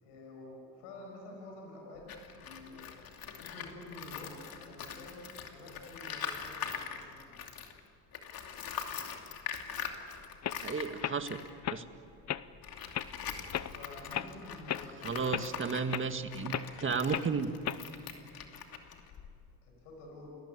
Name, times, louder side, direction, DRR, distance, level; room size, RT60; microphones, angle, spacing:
voice 1, 0.0-3.0 3.4-7.4 13.7-16.0 19.6-20.3, left 2 dB, 90° left, 0 dB, 6.4 m, -49 dB
Tools, 2.0-7.8 8.1-19.6, left 7 dB, 60° left, 2.8 m, -43 dB
sound 1, 9.9-10.0 10.4-10.6 11.0-11.2 11.6-11.8 12.3-12.4 12.9-13.1 13.5-13.7 14.1-14.3 14.7-14.9 15.3-15.5 15.9-16.1 16.5-16.7 17.1-17.3 17.6-17.9, left 11 dB, 40° left, 0.9 m, -35 dB
voice 2, 10.6-11.4 11.7-11.8 15.0-16.5 16.8-17.5, right 5 dB, 30° right, 8 dB, 1.9 m, -33 dB
29.5 x 20.0 x 8.5 m, 2.4 s
supercardioid pair, 85°, 40 cm